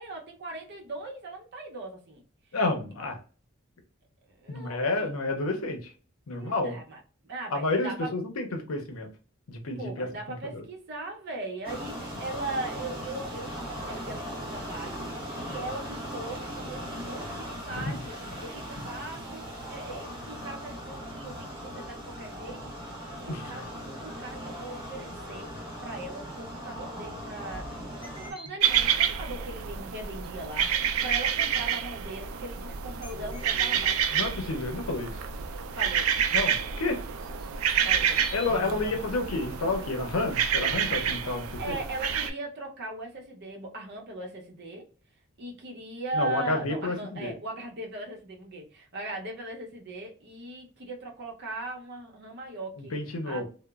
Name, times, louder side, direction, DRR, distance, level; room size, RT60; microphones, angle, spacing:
voice 1, 0.0-2.2 4.4-5.0 6.3-8.1 9.8-23.0 23.2-25.5 25.8-34.0 35.7-36.1 37.8-38.2 38.5-39.0 41.6-44.9 45.4-53.0 53.3-53.5, right 2 dB, 55° right, 1 dB, 0.7 m, -39 dB
voice 2, 2.5-3.2 4.5-5.9 6.3-6.8 7.5-9.1 9.5-10.6 17.7-18.0 23.3-23.6 34.1-35.2 36.3-37.0 38.3-41.8 46.1-47.3 52.8-53.5, left 2 dB, 85° left, 4 dB, 0.6 m, -30 dB
sound 1, 11.6-28.3, equal, 25° right, 1.2 m, -39 dB
sound 2, 28.0-29.1 30.2-30.5 31.2-31.3 31.6-31.7 32.2-32.3 33.0-34.9 35.8-36.2 37.2-39.4, left 1 dB, 25° left, 0.6 m, -46 dB
sound 3, 28.6-42.3, right 8 dB, 85° right, 0.4 m, -28 dB
2.9 x 2.0 x 2.3 m, 0.39 s
head